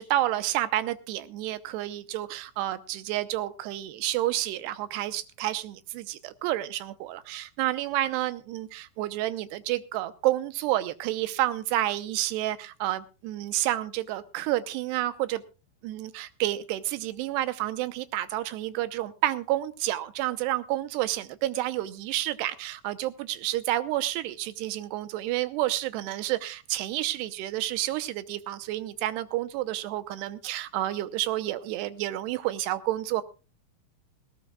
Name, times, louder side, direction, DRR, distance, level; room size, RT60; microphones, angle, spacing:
voice 1, 0.0-15.4 15.8-33.2, right 14 dB, 90° right, 13 dB, 2.9 m, -30 dB
19.0 x 18.0 x 2.3 m, 0.32 s
omnidirectional pair, 4.7 m